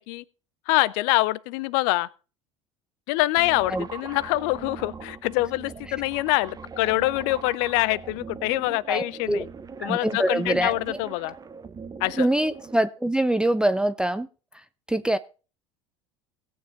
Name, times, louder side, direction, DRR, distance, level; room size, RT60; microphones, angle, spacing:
voice 1, 0.7-2.1 3.1-9.5 9.8-11.4 12.0-12.3, left 19 dB, 60° left, 0.5 m, -25 dB
sound 1, 3.4-12.8, right 5 dB, 25° right, 0.9 m, -41 dB
voice 2, 8.9-9.4 9.8-11.0 12.2-14.3 14.9-15.2, right 1 dB, 5° right, 0.4 m, -24 dB
17.5 x 7.2 x 3.9 m
hypercardioid pair, 70°, 16 cm